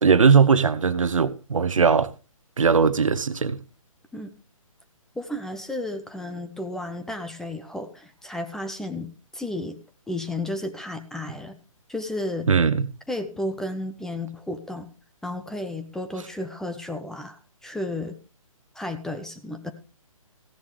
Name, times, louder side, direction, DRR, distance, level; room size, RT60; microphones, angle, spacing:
voice 1, 0.0-2.1 2.6-3.6 12.5-12.9, right 5 dB, 65° right, 0.9 m, -19 dB
voice 2, 5.2-9.8 10.1-11.6 11.9-12.5 13.1-14.9 15.2-18.2 18.7-19.7, left 1 dB, 5° left, 0.6 m, -33 dB
16.0 x 10.5 x 3.2 m
figure-of-eight pair, 135°, 18 cm